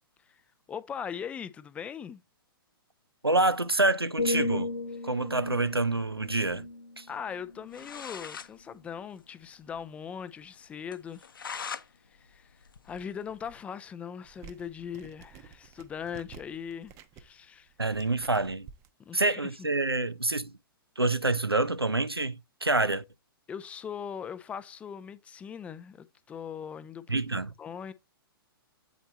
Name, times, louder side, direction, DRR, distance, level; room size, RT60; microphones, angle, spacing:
voice 1, 0.7-2.2 7.1-11.3 12.1-17.7 19.1-19.4 23.5-27.9, left 7 dB, 10° left, 0.4 m, -40 dB
voice 2, 3.2-4.7 5.0-6.7 7.0-7.1 17.8-18.7 19.1-20.5 21.0-23.0 27.1-27.5, right 2 dB, 90° right, 0.6 m, -27 dB
sound 1, 4.2-8.1 8.6-8.9, left 2 dB, 80° left, 1.0 m, -35 dB
sound 2, 7.4-7.5 7.7-8.5 8.9-9.0 9.2-9.3 9.7-9.8 10.2-10.3 10.9-11.9 12.2-13.6, left 6 dB, 65° left, 0.7 m, -41 dB
sound 3, 14.2-18.9, right 7 dB, 25° right, 0.7 m, -51 dB
8.1 x 4.4 x 4.0 m
figure-of-eight pair, 115°, 12 cm